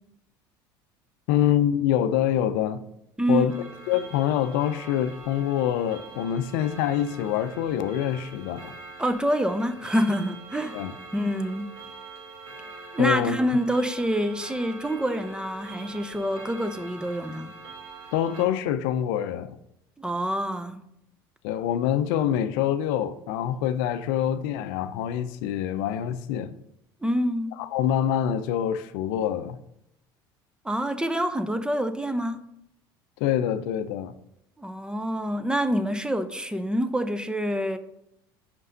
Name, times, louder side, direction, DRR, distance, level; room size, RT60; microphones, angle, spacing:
voice 1, 1.3-2.8 3.3-8.7 10.7-10.9 13.0-13.4 18.1-19.6 21.4-26.5 27.6-29.6 33.2-34.1, left 10 dB, 70° left, 0.5 m, -25 dB
voice 2, 3.2-3.6 9.0-10.8 11.1-11.7 12.9-17.5 20.0-20.8 27.0-27.5 30.6-32.4 34.6-37.8, equal, 5° right, 0.7 m, -26 dB
Clock, 3.5-18.4, right 3 dB, 60° right, 2.1 m, -44 dB
5.5 x 5.3 x 6.4 m
hypercardioid pair, 75°, 12 cm